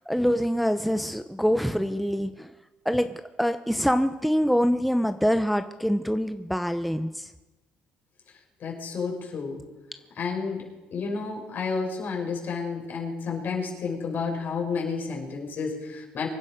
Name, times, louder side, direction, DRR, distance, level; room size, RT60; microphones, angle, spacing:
voice 1, 0.0-2.5 2.8-7.3, equal, ahead, 9 dB, 0.8 m, -25 dB
voice 2, 8.6-9.6 10.1-16.3, left 5 dB, 55° left, 0 dB, 5.2 m, -31 dB
24.0 x 10.5 x 5.1 m, 1.1 s
supercardioid pair, 65°, 4 cm